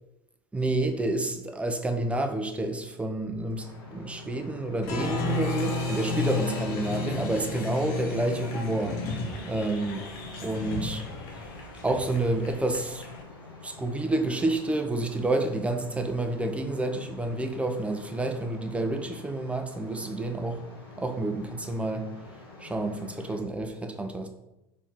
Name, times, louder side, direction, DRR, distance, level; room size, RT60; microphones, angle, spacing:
voice 1, 0.5-9.0 9.5-10.1 10.4-11.1 11.8-13.1 13.6-20.6 21.0-22.1 22.6-24.3, right 2 dB, 10° right, 0.5 m, -29 dB
sound 1, 3.5-23.4, left 3 dB, 80° left, 1.3 m, -47 dB
Applause, 4.8-13.2, left 3 dB, 55° left, 0.9 m, -32 dB
4.2 x 2.8 x 3.9 m
figure-of-eight pair, 75°, 12 cm